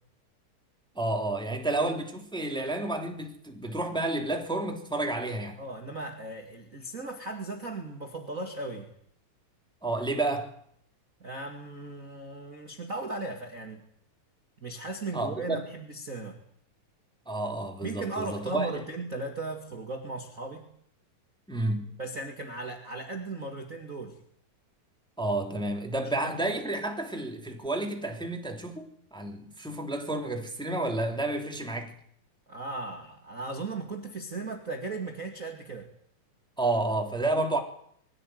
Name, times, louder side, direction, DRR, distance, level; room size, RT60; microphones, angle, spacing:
voice 1, 0.9-5.6 9.8-10.5 15.1-15.6 17.3-18.8 21.5-21.9 25.2-31.9 36.6-37.6, right 2 dB, ahead, 2.8 m, -30 dB
voice 2, 5.6-8.9 11.2-13.8 14.6-16.4 17.8-20.7 22.0-24.2 26.0-26.4 32.5-35.9, right 3 dB, 30° right, 2.3 m, -37 dB
22.0 x 16.5 x 9.3 m
omnidirectional pair, 3.7 m